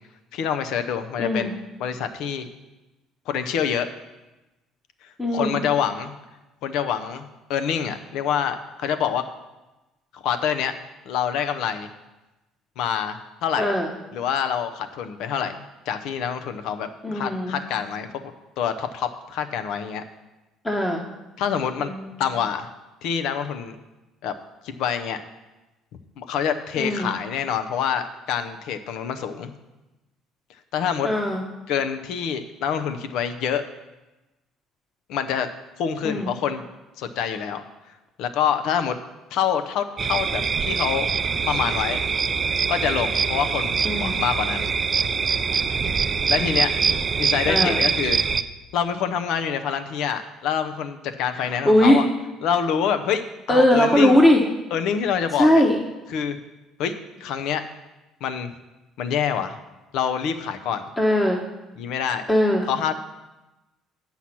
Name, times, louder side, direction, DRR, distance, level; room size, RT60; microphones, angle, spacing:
voice 1, 0.3-1.5 1.8-2.5 3.3-3.9 5.3-6.1 6.6-9.2 10.2-10.7 11.1-11.9 12.8-13.7 14.1-20.0 21.4-21.9 22.2-22.7 23.0-23.8 24.2-24.3 24.6-25.2 26.2-29.5 30.7-31.1 31.7-33.6 35.1-35.5 35.8-36.6 37.0-37.6 38.2-39.0 39.3-41.1 41.4-42.0 42.7-44.7 46.3-46.7 47.2-48.2 48.7-52.1 52.4-53.2 53.5-54.2 54.7-55.6 56.1-56.4 56.8-57.6 58.2-58.5 59.0-59.6 59.9-60.8 61.8-62.3 62.7-62.9, left 8 dB, 70° left, 9 dB, 0.7 m, -26 dB
voice 2, 1.2-1.5 5.2-5.6 13.6-13.9 17.0-17.6 20.6-21.0 21.8-22.2 26.8-27.1 31.0-31.4 36.0-36.3 43.8-44.1 47.5-47.8 51.4-52.0 53.5-54.4 55.4-55.7 61.0-61.4 62.3-62.6, left 1 dB, 15° left, 0 dB, 1.2 m, -20 dB
sound 1, 40.0-48.4, right 6 dB, 40° right, 0.5 m, -24 dB
8.6 x 5.7 x 6.0 m, 1.0 s
supercardioid pair, 70°, 0 cm